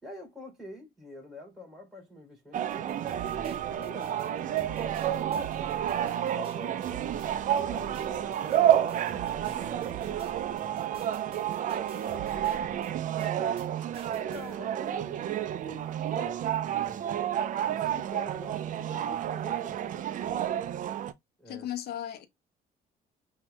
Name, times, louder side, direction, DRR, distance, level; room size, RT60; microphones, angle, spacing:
voice 1, 0.0-5.1 6.0-13.6 14.1-15.2 16.1-17.2 17.6-20.4 21.4-21.7, left 1 dB, ahead, 3.3 m, -47 dB
sound 1, 2.5-21.1, right 10 dB, 50° right, 0.5 m, -30 dB
sound 2, 2.7-13.7 13.9-14.6, right 6 dB, 35° right, 1.3 m, -47 dB
voice 2, 21.5-22.3, left 11 dB, 70° left, 0.9 m, -36 dB
5.7 x 2.7 x 2.3 m
cardioid pair, 110°, 17 cm